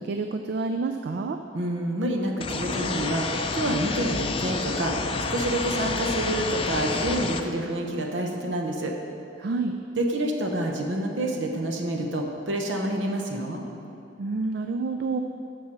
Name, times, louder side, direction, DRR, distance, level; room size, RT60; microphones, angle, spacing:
voice 1, 0.0-1.4 9.4-9.7 14.2-15.2, right 3 dB, 60° right, 6 dB, 0.4 m, -28 dB
voice 2, 1.5-3.3 3.5-5.0 5.3-8.9 10.0-13.6, right 1 dB, 80° right, 2 dB, 1.0 m, -28 dB
sound 1, 2.4-7.4, left 3 dB, 30° left, 0.5 m, -29 dB
7.4 x 6.8 x 6.2 m, 2.8 s
head